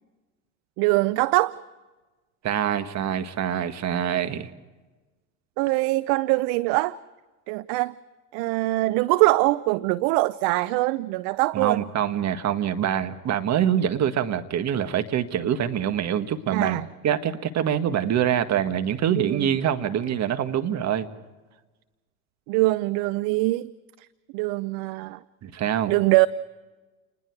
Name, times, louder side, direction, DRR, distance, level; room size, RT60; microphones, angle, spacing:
voice 1, 0.8-1.5 5.6-7.0 7.5-7.9 8.3-11.9 16.5-16.9 19.2-19.5 22.5-23.7 24.3-25.2 25.9-26.3, right 20 dB, 60° right, 18 dB, 0.7 m, -23 dB
voice 2, 2.4-4.5 11.5-16.8 17.0-21.1 25.4-25.9, right 9 dB, 40° right, 9 dB, 1.7 m, -25 dB
29.0 x 20.5 x 4.8 m, 1.2 s
hypercardioid pair, 90°, 42 cm